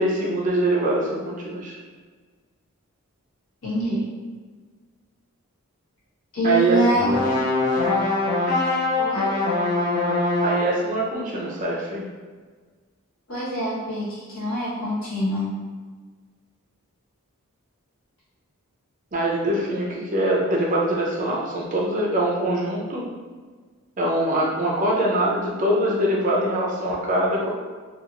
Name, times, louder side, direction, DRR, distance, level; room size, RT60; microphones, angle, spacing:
voice 1, 0.0-1.8 6.4-6.8 10.4-12.0 19.1-23.0 24.0-27.5, right 1 dB, 35° right, -3 dB, 0.5 m, -23 dB
voice 2, 3.6-4.0 6.3-7.2 9.0-9.3 13.3-15.5, right 1 dB, 60° left, -9 dB, 1.3 m, -25 dB
sound 1, 6.9-10.9, left 2 dB, 85° left, 0.7 m, -23 dB
2.9 x 2.4 x 2.5 m, 1.5 s
head